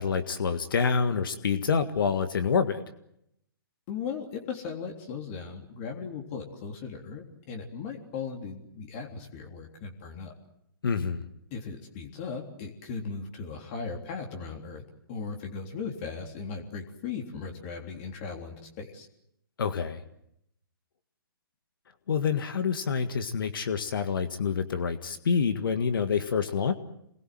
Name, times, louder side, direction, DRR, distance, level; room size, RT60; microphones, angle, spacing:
voice 1, 0.0-2.8 10.8-11.2 19.6-20.0 22.1-26.7, left 6 dB, 65° left, 9 dB, 1.8 m, -27 dB
voice 2, 3.9-10.3 11.5-14.8 15.1-19.1, left 5 dB, 35° left, 2 dB, 3.5 m, -37 dB
28.0 x 21.0 x 7.8 m, 0.79 s
hypercardioid pair, 135°, 12 cm